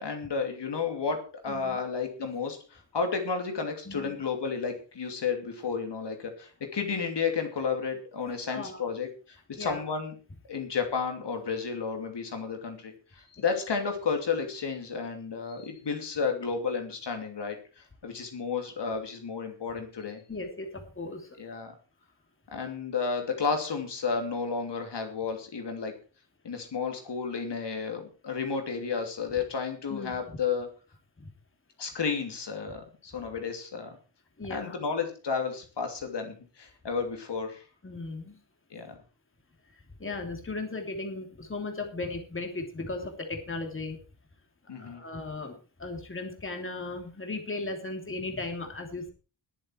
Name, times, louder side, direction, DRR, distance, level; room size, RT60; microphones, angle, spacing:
voice 1, 0.0-10.1 10.5-20.2 21.4-21.7 22.5-25.9 26.4-30.7 31.8-34.0 34.5-37.6 38.7-39.0 44.7-45.0, left 5 dB, 65° left, 4 dB, 2.8 m, -32 dB
voice 2, 1.5-1.8 3.8-4.2 8.5-8.8 9.6-9.8 20.3-21.4 29.9-30.2 31.2-31.3 34.4-34.8 37.8-38.4 39.7-44.0 44.8-49.1, left 3 dB, 25° left, 3 dB, 3.1 m, -37 dB
20.5 x 7.7 x 4.6 m, 0.35 s
wide cardioid pair, 160°, 45 cm